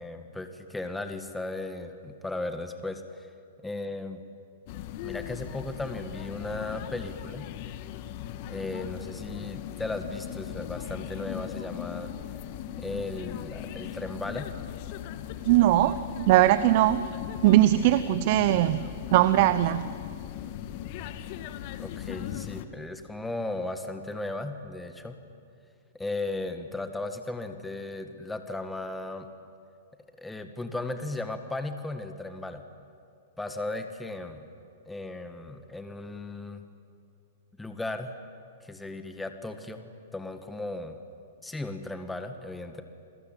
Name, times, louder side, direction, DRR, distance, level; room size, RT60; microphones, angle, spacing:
voice 1, 0.0-3.3 3.6-4.2 5.0-7.5 8.5-12.1 12.8-14.6 21.8-25.2 25.9-29.3 30.2-32.6 33.4-34.5 34.9-36.6 37.6-38.2 38.6-41.0 41.4-42.8, left 2 dB, 5° left, 7 dB, 1.9 m, -36 dB
sound 1, 4.7-22.7, left 11 dB, 50° left, 1.5 m, -38 dB
voice 2, 15.5-17.1 17.4-18.8 19.1-19.9, right 15 dB, 50° right, 14 dB, 0.9 m, -20 dB
29.0 x 21.0 x 9.1 m, 2.3 s
hypercardioid pair, 110°, 0 cm